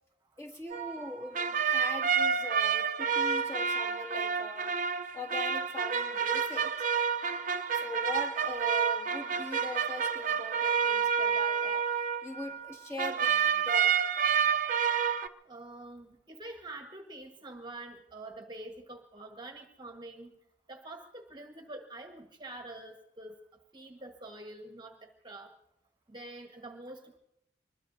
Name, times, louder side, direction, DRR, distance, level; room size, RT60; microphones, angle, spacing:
voice 1, 0.4-4.8 5.1-6.8 7.7-11.8 12.2-14.0, left 1 dB, 15° left, 1 dB, 2.1 m, -41 dB
sound 1, 0.7-12.7 13.0-15.3, right 6 dB, 45° right, 0.6 m, -29 dB
voice 2, 15.4-20.4 20.7-23.4 23.7-25.5 26.1-27.2, right 2 dB, 25° right, 3 dB, 1.3 m, -46 dB
25.0 x 21.0 x 2.6 m, 0.80 s
head